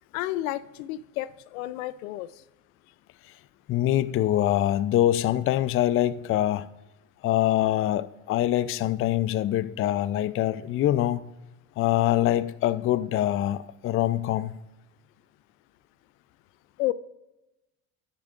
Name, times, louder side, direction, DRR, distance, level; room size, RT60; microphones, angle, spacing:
voice 1, 0.1-2.3 16.8-16.9, left 15 dB, 85° left, 0.5 m, -31 dB
voice 2, 3.7-6.7 7.2-11.2 11.8-14.6, left 13 dB, 35° left, 0.4 m, -24 dB
10.0 x 9.8 x 2.4 m
supercardioid pair, 85°, 41 cm